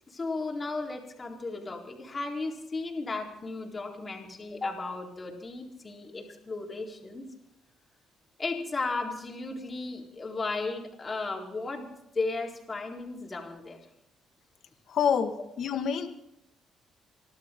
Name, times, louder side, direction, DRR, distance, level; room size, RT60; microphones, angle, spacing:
voice 1, 0.1-7.3 8.4-11.9 12.1-13.8, left 3 dB, 30° left, -1 dB, 4.1 m, -35 dB
voice 2, 14.9-16.1, left 7 dB, 65° left, 6 dB, 1.8 m, -27 dB
28.5 x 12.0 x 3.8 m, 0.83 s
cardioid pair, 90°, 0 cm